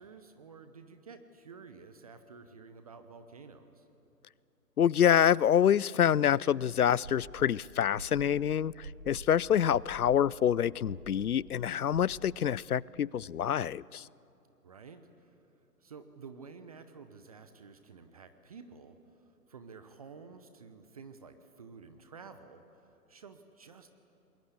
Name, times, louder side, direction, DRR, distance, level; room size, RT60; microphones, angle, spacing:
voice 1, 0.0-3.9 14.6-15.4 15.8-23.9, right 5 dB, 25° right, 0.8 m, -51 dB
voice 2, 4.8-14.1, left 9 dB, 65° left, 0.6 m, -26 dB
sound 1, 7.0-7.5 7.9-9.3 9.7-10.2 10.8-11.3 11.8-12.0, right 3 dB, 70° right, 6.6 m, -46 dB
28.5 x 21.0 x 8.3 m
figure-of-eight pair, 135°, 47 cm